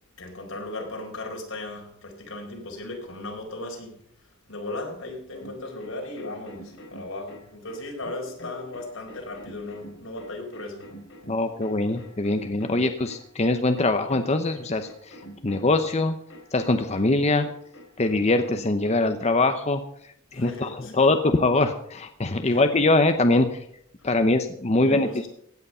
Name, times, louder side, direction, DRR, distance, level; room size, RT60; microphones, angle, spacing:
voice 1, 0.2-4.0 4.5-10.9 20.3-20.9 22.4-22.6 24.0-24.1 24.7-25.3, left 2 dB, 85° left, 1 dB, 4.4 m, -37 dB
sound 1, 5.4-19.4, equal, 70° left, 3.9 m, -45 dB
voice 2, 11.3-15.2 15.4-16.2 16.5-17.5 18.0-19.8 20.3-23.6 24.0-25.3, left 2 dB, 35° left, 7 dB, 0.8 m, -23 dB
16.5 x 9.6 x 5.6 m, 0.69 s
head